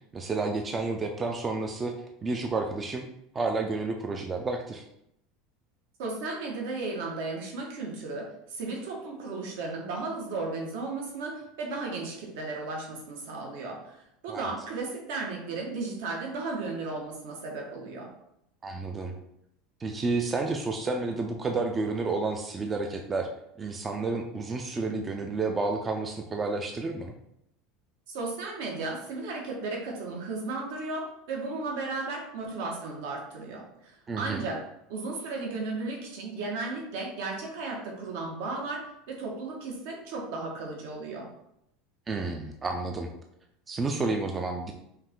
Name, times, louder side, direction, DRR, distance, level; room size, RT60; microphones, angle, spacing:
voice 1, 0.1-2.0 2.2-3.1 3.3-4.8 14.3-14.5 18.6-19.1 19.8-23.3 23.6-27.1 34.1-34.5 42.1-43.1 43.7-44.7, right 3 dB, 15° right, 3 dB, 0.3 m, -30 dB
voice 2, 6.0-18.1 28.1-34.6 34.9-41.3, right 3 dB, 75° right, 0 dB, 1.3 m, -35 dB
5.5 x 2.4 x 3.6 m, 0.79 s
supercardioid pair, 165°, 0 cm